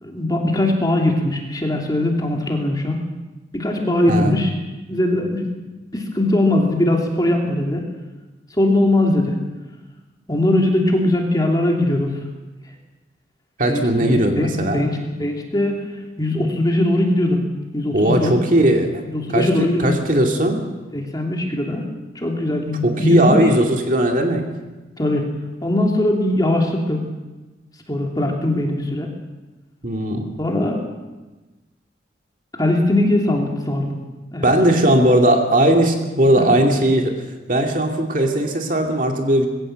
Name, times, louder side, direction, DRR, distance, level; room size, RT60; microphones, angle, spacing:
voice 1, 0.0-3.0 3.5-4.5 4.9-5.5 5.9-7.9 8.6-9.4 10.3-12.2 13.7-15.9 16.2-17.4 17.7-18.4 19.0-20.0 20.9-21.9 22.1-23.5 25.0-25.3 25.6-27.1 27.9-29.1 30.4-30.8 32.6-34.0 34.3-34.5, left 1 dB, 20° left, 0 dB, 2.9 m, -20 dB
voice 2, 13.6-14.9 17.9-19.0 19.3-20.6 22.8-24.4 29.8-30.3 34.4-37.1 37.5-39.5, right 1 dB, 40° right, 2 dB, 2.4 m, -18 dB
21.0 x 16.5 x 7.7 m, 1.2 s
head